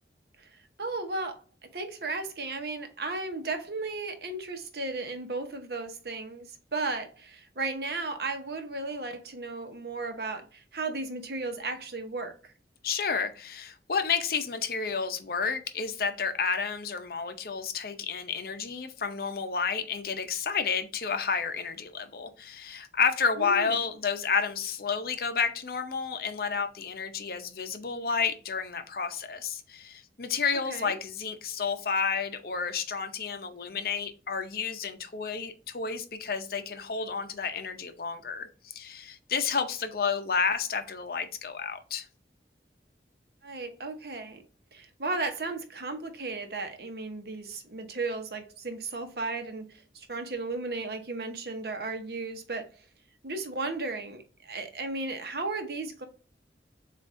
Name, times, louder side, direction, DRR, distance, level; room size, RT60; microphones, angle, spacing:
voice 1, 0.4-1.4 1.7-12.5 23.4-23.7 30.7-31.0 43.4-44.4 44.7-52.7 53.2-56.1, right 3 dB, 60° right, 0.8 m, -35 dB
voice 2, 12.8-42.1, left 5 dB, 55° left, 0.6 m, -31 dB
7.3 x 2.5 x 2.5 m
head